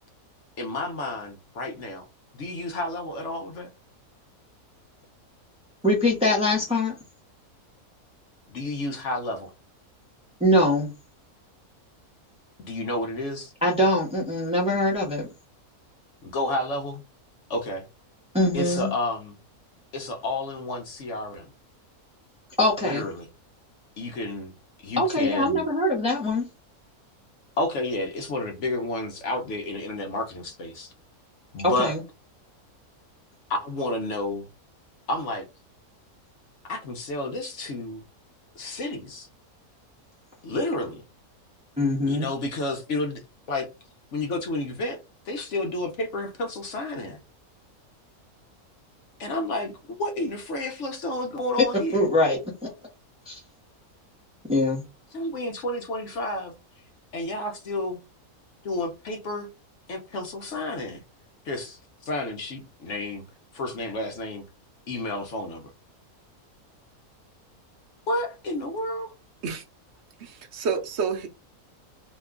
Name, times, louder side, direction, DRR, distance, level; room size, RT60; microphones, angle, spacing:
voice 1, 0.6-2.0 2.3-3.7 8.5-9.5 12.6-13.5 16.2-17.0 17.5-17.8 18.5-19.3 19.9-21.5 22.8-23.3 24.0-24.5 24.8-25.6 27.6-30.9 31.5-31.9 33.5-34.5 35.1-35.4 36.7-38.0 38.6-39.3 40.4-41.0 42.1-43.2 43.5-43.7 44.1-45.0 45.3-47.2 49.2-52.0 55.1-56.5 57.1-58.0 58.6-59.5 59.9-61.0 61.4-63.2 63.5-64.4 64.9-65.7 68.1-69.1, left 2 dB, 60° left, 1.0 m, -30 dB
voice 2, 5.8-6.9 10.4-10.9 13.6-15.3 18.3-18.9 22.6-23.1 25.0-26.5 31.6-32.0 41.8-42.3 51.9-52.4 53.3-53.4 54.5-54.8, left 1 dB, 5° right, 0.5 m, -23 dB
voice 3, 70.2-71.3, right 5 dB, 55° right, 0.8 m, -29 dB
2.9 x 2.2 x 3.5 m
omnidirectional pair, 1.6 m